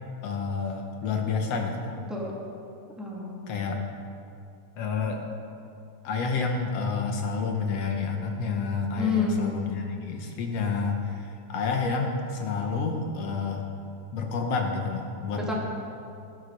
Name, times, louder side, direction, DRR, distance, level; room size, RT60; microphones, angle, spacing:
voice 1, 0.2-1.9 3.5-3.8 4.8-5.3 6.0-13.7 14.1-15.5, left 4 dB, 65° left, 3 dB, 1.8 m, -29 dB
voice 2, 3.0-3.5 9.0-9.5 15.3-15.5, left 4 dB, ahead, -5 dB, 1.6 m, -28 dB
13.0 x 11.5 x 5.2 m, 2.5 s
omnidirectional pair, 3.6 m